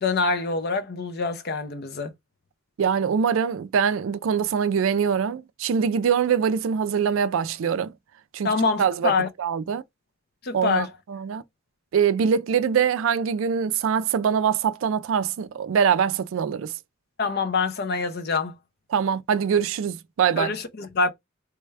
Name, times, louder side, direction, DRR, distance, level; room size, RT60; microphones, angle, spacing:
voice 1, 0.0-2.1 8.4-9.3 10.4-10.9 17.2-18.6 20.4-21.1, left 4 dB, 50° left, 0.5 m, -25 dB
voice 2, 2.8-7.9 8.3-8.5 8.8-9.1 9.4-9.8 10.5-11.4 11.9-16.7 18.9-20.6, right 7 dB, 65° right, 0.3 m, -23 dB
3.3 x 2.2 x 3.3 m
head